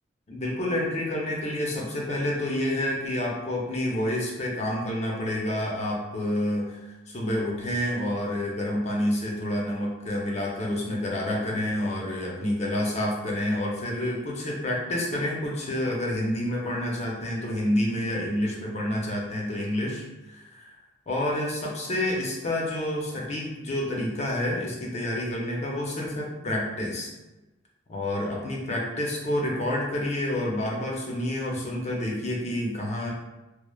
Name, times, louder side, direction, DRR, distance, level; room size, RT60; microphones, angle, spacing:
voice 1, 0.3-20.8 21.1-27.1 27.9-33.1, left 1 dB, 35° left, -2 dB, 0.5 m, -28 dB
3.0 x 2.0 x 2.2 m, 1.0 s
head